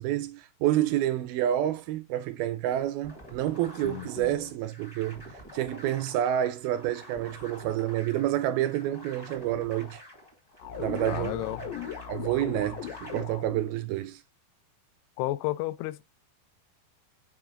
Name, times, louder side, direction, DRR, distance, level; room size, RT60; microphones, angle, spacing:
voice 1, 0.0-10.0 10.8-11.5 12.1-14.2, right 12 dB, 80° right, 2.3 m, -29 dB
sound 1, 3.0-13.2, equal, 25° left, 0.5 m, -48 dB
voice 2, 3.8-4.5 11.0-11.6 15.2-16.0, left 18 dB, 90° left, 2.6 m, -32 dB
sound 2, 10.6-13.7, left 9 dB, 70° left, 2.4 m, -38 dB
6.2 x 4.6 x 3.7 m
omnidirectional pair, 4.6 m